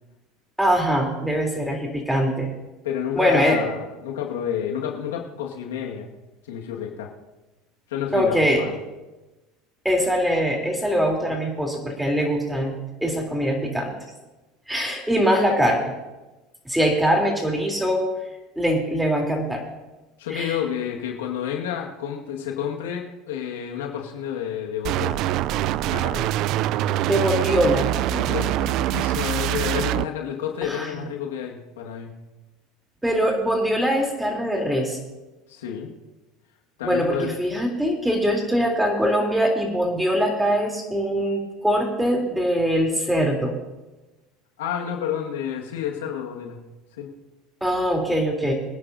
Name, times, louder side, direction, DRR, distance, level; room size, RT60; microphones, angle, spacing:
voice 1, 0.6-2.5 3.1-3.6 8.1-8.6 9.9-12.7 13.0-13.9 14.7-15.9 16.7-18.1 18.6-19.6 20.3-20.6 27.0-27.9 30.6-31.1 33.0-35.0 36.8-43.5 47.6-48.5, equal, 5° right, 1 dB, 3.4 m, -22 dB
voice 2, 2.8-6.1 6.5-7.1 7.9-8.8 20.2-25.2 25.8-26.3 28.1-32.1 35.5-35.9 36.8-37.3 44.6-46.6 47.0-47.1, left 9 dB, 85° left, 0 dB, 1.8 m, -30 dB
sound 1, 24.8-30.0, right 14 dB, 60° right, 0.4 m, -24 dB
24.5 x 10.0 x 2.7 m, 1.1 s
hypercardioid pair, 90°, 0 cm